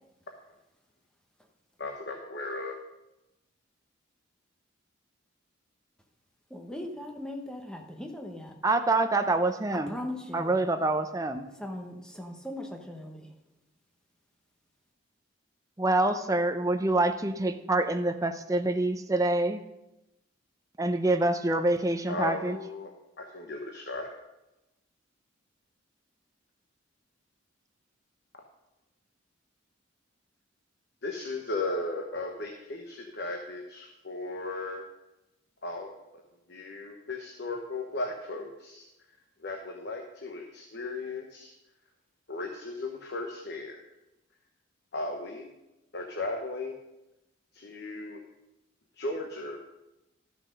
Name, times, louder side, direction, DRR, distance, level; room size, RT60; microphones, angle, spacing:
voice 1, 1.8-2.8 22.1-22.9 23.2-24.1 31.0-34.8 35.6-36.2 36.5-38.9 39.4-41.5 42.3-43.8 44.9-45.5 45.9-46.8 47.5-48.2 49.0-49.6, left 2 dB, 55° left, 3 dB, 1.0 m, -36 dB
voice 2, 6.5-8.5 9.7-10.6 11.6-13.3, left 1 dB, 5° left, 3 dB, 1.0 m, -39 dB
voice 3, 8.6-9.9 10.3-11.5 15.8-19.6 20.8-22.6, right 2 dB, 15° right, 7 dB, 0.6 m, -26 dB
13.0 x 6.1 x 5.2 m, 0.95 s
head